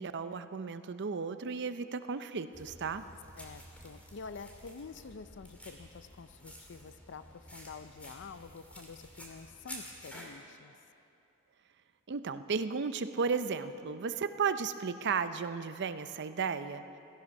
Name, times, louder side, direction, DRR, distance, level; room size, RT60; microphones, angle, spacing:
voice 1, 0.0-3.0 12.1-16.8, right 5 dB, 50° right, 11 dB, 0.5 m, -34 dB
sound 1, 2.5-10.3, equal, 5° left, 2.0 m, -51 dB
voice 2, 3.4-10.7, left 5 dB, 55° left, 12 dB, 0.5 m, -48 dB
16.0 x 14.0 x 5.4 m, 2.7 s
head